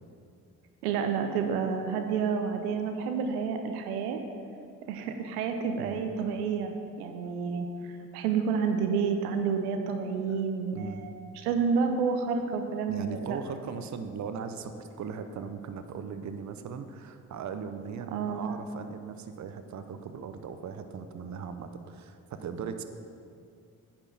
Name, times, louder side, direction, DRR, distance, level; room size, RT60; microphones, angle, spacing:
voice 1, 0.8-4.2 4.9-7.7 8.1-13.4 18.1-18.5, right 6 dB, 80° right, 6 dB, 0.7 m, -29 dB
voice 2, 10.7-11.0 12.9-22.8, right 6 dB, 40° right, 9 dB, 0.7 m, -39 dB
9.8 x 4.4 x 5.6 m, 2.4 s
hypercardioid pair, 45°, 44 cm